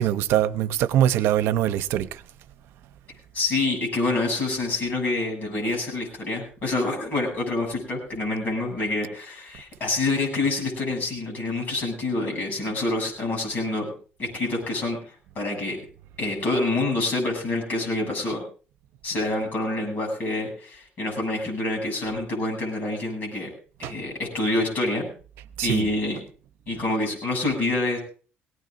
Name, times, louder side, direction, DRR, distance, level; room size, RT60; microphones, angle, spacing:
voice 1, 0.0-2.2 23.8-23.9 25.6-25.9, right 11 dB, 85° right, 0.8 m, -23 dB
voice 2, 3.3-13.9 14.2-15.8 16.2-18.4 19.0-23.5 23.8-25.1 25.6-26.2 26.7-28.0, left 2 dB, 45° left, 7.8 m, -27 dB
20.5 x 17.5 x 2.6 m
cardioid pair, 170°, 4 cm